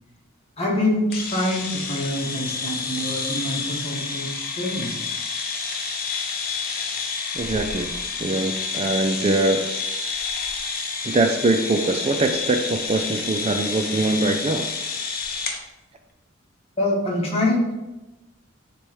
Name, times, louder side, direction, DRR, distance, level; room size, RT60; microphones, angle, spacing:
voice 1, 0.6-4.9 16.8-17.7, left 1 dB, 30° left, -4 dB, 1.7 m, -25 dB
sound 1, 1.1-15.6, left 5 dB, 45° left, 0.8 m, -29 dB
voice 2, 7.4-7.9 8.2-9.7 11.0-14.7, right 2 dB, 30° right, 5 dB, 0.3 m, -22 dB
10.0 x 3.3 x 3.1 m, 1.0 s
head